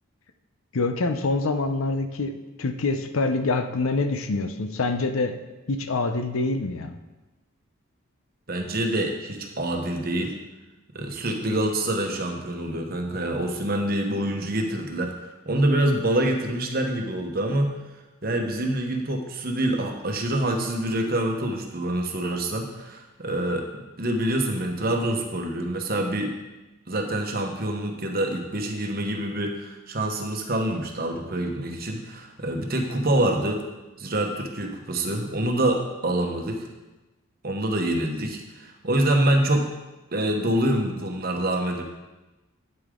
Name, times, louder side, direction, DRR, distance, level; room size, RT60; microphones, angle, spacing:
voice 1, 0.7-5.4 5.7-7.0, left 3 dB, 75° left, 7 dB, 0.7 m, -26 dB
voice 2, 8.5-10.3 10.9-15.1 15.5-17.8 18.2-26.3 26.9-33.6 34.0-36.7 37.4-39.7 40.1-41.8, right 1 dB, 45° right, 3 dB, 1.0 m, -26 dB
8.8 x 8.3 x 3.7 m, 1.1 s
head